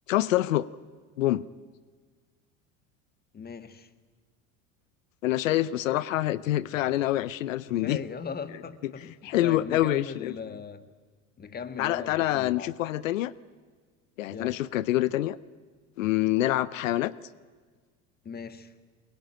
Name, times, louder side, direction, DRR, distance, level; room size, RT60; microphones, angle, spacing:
voice 1, 0.1-0.7 1.2-1.4 5.2-8.0 9.2-10.4 11.8-13.3 14.2-15.4 16.0-17.1, left 14 dB, 85° left, 19 dB, 0.7 m, -26 dB
voice 2, 3.3-3.9 7.7-10.9 11.4-12.7 14.3-14.6 18.2-18.7, left 6 dB, 25° left, 11 dB, 1.7 m, -39 dB
22.5 x 21.5 x 9.1 m, 1.5 s
hypercardioid pair, 90°, 38 cm